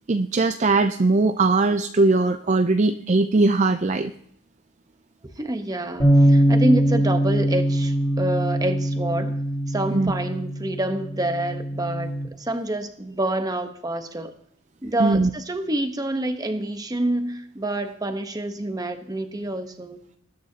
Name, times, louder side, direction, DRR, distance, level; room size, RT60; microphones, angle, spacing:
voice 1, 0.1-4.1 9.9-10.1 15.0-15.3, right 3 dB, 35° right, 8 dB, 0.4 m, -20 dB
voice 2, 5.4-9.3 9.7-14.3 14.8-20.0, right 1 dB, 20° right, 7 dB, 1.0 m, -27 dB
sound 1, 6.0-12.2, right 1 dB, 25° left, 4.5 m, -22 dB
20.0 x 9.4 x 2.8 m, 0.69 s
head